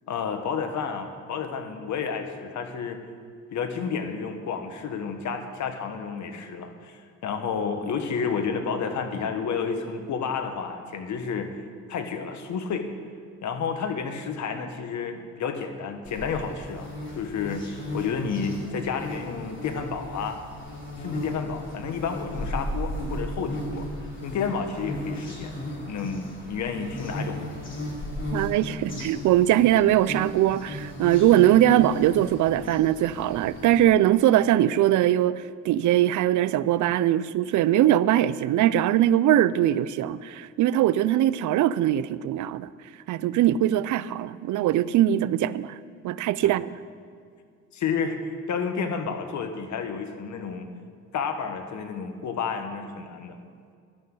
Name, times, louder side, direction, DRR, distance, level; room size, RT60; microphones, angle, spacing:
voice 1, 0.1-3.0 3.5-11.6 11.9-12.9 13.4-16.9 17.1-20.4 21.0-23.9 24.2-25.5 25.8-27.5 47.7-50.7 51.1-53.4, left 6 dB, 70° left, 1.4 m, -31 dB
sound 1, 16.0-33.9, left 1 dB, 40° left, 3.1 m, -36 dB
voice 2, 28.3-42.7 43.1-45.8 46.0-46.7, right 12 dB, 75° right, 0.5 m, -21 dB
16.5 x 12.0 x 3.9 m
cardioid pair, 90°, 30 cm